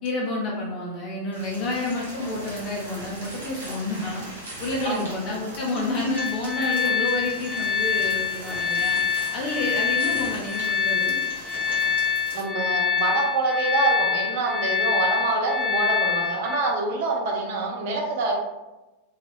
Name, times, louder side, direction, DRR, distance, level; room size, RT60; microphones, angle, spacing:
voice 1, 0.0-4.2 4.6-9.0 9.3-11.2, left 2 dB, 35° left, -3 dB, 0.6 m, -29 dB
sound 1, 1.3-12.4, right 1 dB, 70° right, 1.0 m, -40 dB
sound 2, 6.2-16.6, left 7 dB, ahead, 0.8 m, -25 dB
voice 2, 12.3-18.3, right 3 dB, 50° right, 0 dB, 0.6 m, -25 dB
2.6 x 2.4 x 3.0 m, 1.0 s
figure-of-eight pair, 90°, 0 cm